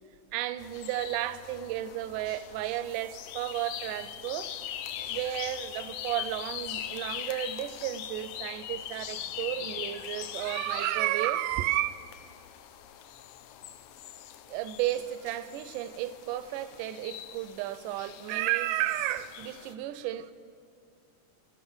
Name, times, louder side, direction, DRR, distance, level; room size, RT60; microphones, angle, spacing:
voice 1, 0.3-4.5 5.0-11.9 14.5-20.3, right 14 dB, 90° right, 2.1 m, -32 dB
sound 1, 0.6-19.7, left 11 dB, 90° left, 2.1 m, -42 dB
sound 2, 2.8-8.4, right 2 dB, 30° right, 0.3 m, -59 dB
13.0 x 11.5 x 7.1 m
omnidirectional pair, 3.6 m